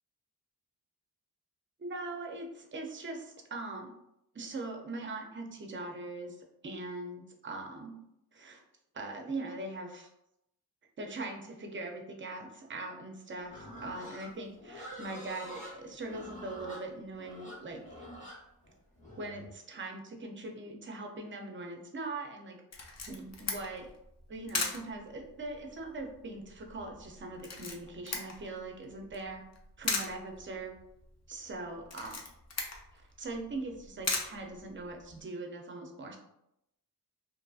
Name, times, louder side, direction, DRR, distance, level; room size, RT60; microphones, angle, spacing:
voice 1, 1.8-3.9 4.3-8.1 8.3-8.6 8.9-10.1 11.0-17.8 19.2-22.6 23.1-23.9 24.3-29.4 29.8-30.8 31.3-32.2 32.9-36.2, right 2 dB, 30° right, 2 dB, 0.4 m, -41 dB
Livestock farm animals working animals, 13.5-19.5, equal, 20° left, 0.8 m, -47 dB
Camera, 22.7-35.2, left 3 dB, 40° left, 0.4 m, -40 dB
2.6 x 2.6 x 2.3 m, 0.81 s
wide cardioid pair, 140°, 40 cm